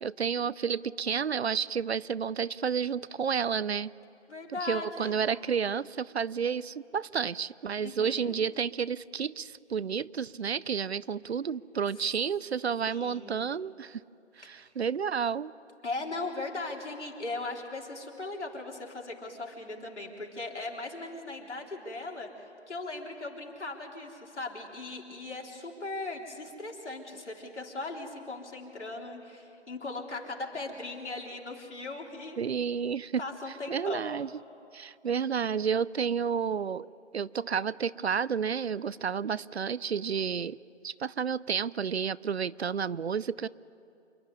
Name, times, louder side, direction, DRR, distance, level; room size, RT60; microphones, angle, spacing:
voice 1, 0.0-3.9 4.5-14.0 14.4-15.5 32.4-33.2 33.7-34.3 34.7-36.9 37.1-40.6 40.8-43.5, right 7 dB, 65° right, 21 dB, 0.5 m, -31 dB
voice 2, 4.3-5.2 7.8-8.3 12.9-13.4 14.4-14.6 15.8-22.3 22.7-32.4 33.2-34.1, left 2 dB, 75° left, 0 dB, 3.7 m, -38 dB
27.0 x 11.0 x 9.8 m, 2.6 s
figure-of-eight pair, 170°, 35 cm